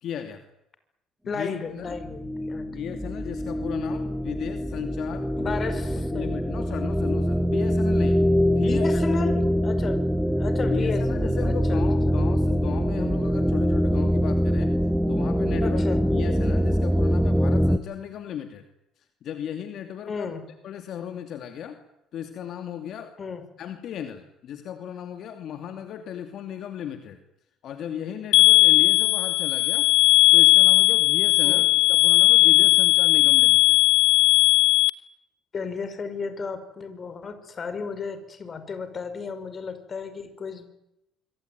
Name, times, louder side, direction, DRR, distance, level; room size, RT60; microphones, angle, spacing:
voice 1, 0.0-0.4 1.3-2.0 2.7-5.3 5.7-8.8 10.7-14.7 15.1-15.8 16.1-18.7 19.0-20.3 20.6-21.8 22.1-23.1 23.6-27.2 27.6-29.9 30.3-33.8, left 9 dB, 60° left, 7 dB, 2.7 m, -36 dB
voice 2, 1.3-2.7 5.4-6.3 6.9-7.1 8.5-11.8 15.6-16.0 20.1-20.4 23.2-23.4 31.4-31.6 35.5-40.7, left 5 dB, 35° left, 11 dB, 5.4 m, -33 dB
sound 1, 1.9-17.8, equal, 5° right, 1.5 m, -24 dB
sound 2, 28.3-34.9, left 20 dB, 85° left, 1.4 m, -17 dB
25.5 x 25.0 x 9.4 m, 0.86 s
cardioid pair, 120°, 0 cm